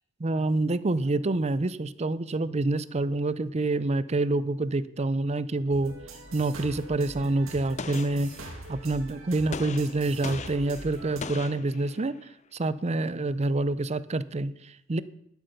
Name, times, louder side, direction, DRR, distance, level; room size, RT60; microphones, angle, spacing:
voice 1, 0.2-5.9 6.3-8.3 8.7-15.0, right 2 dB, 30° right, 16 dB, 0.5 m, -27 dB
sound 1, 5.7-11.2, right 2 dB, 75° right, 2.3 m, -43 dB
Gunshot gunfire, 7.8-8.8 9.5-12.3, left 5 dB, 35° left, 0.6 m, -40 dB
11.5 x 8.3 x 6.6 m, 0.75 s
head